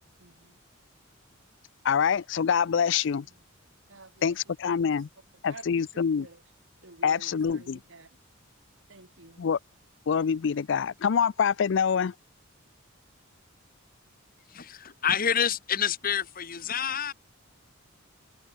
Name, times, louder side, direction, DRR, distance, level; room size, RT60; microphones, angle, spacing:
voice 1, 0.2-0.6 3.9-4.4 5.5-6.4 6.8-8.2 8.9-9.4, right 3 dB, 60° right, 2.5 m, -50 dB
voice 2, 1.8-3.3 4.2-5.1 5.4-6.3 7.0-7.8 9.4-9.6 10.1-12.1, left 7 dB, 60° left, 0.4 m, -25 dB
voice 3, 14.5-17.1, left 8 dB, 45° left, 1.3 m, -28 dB
head